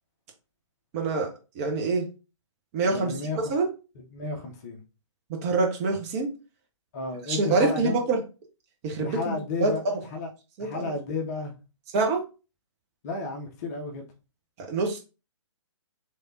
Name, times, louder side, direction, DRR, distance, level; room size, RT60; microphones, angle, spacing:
voice 1, 0.9-1.3 1.5-2.1 2.7-3.1 3.5-3.7 5.3-6.3 7.3-8.2 8.8-9.3 9.6-9.7 10.6-10.9 11.9-12.2 14.6-15.0, right 3 dB, 30° right, 0.9 m, -25 dB
voice 2, 2.9-3.5 4.1-4.8 6.9-8.0 9.0-9.8 10.1-10.3 10.6-11.5 13.0-14.1, left 3 dB, 30° left, 0.7 m, -32 dB
3.3 x 3.3 x 2.8 m
figure-of-eight pair, 135°, 16 cm